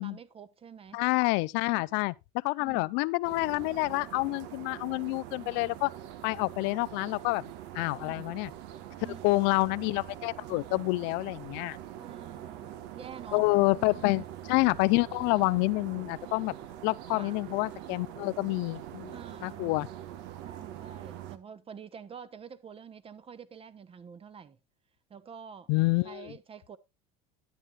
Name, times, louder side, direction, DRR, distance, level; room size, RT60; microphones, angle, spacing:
voice 1, 0.0-1.0 1.8-1.9 2.6-2.9 8.0-8.3 9.0-9.4 12.0-13.5 13.9-14.2 17.2-17.4 19.1-19.8 20.4-24.6 25.1-25.7 26.0-26.8, right 7 dB, 30° right, 1.2 m, -47 dB
voice 2, 0.9-2.1 2.4-5.9 6.2-7.4 7.7-8.5 9.2-11.8 13.3-14.2 14.5-16.5 16.8-19.1 19.4-19.9 25.7-26.3, left 24 dB, 70° left, 0.5 m, -28 dB
sound 1, 3.2-21.4, right 12 dB, 70° right, 1.2 m, -44 dB
12.5 x 9.5 x 2.4 m
supercardioid pair, 95°, 19 cm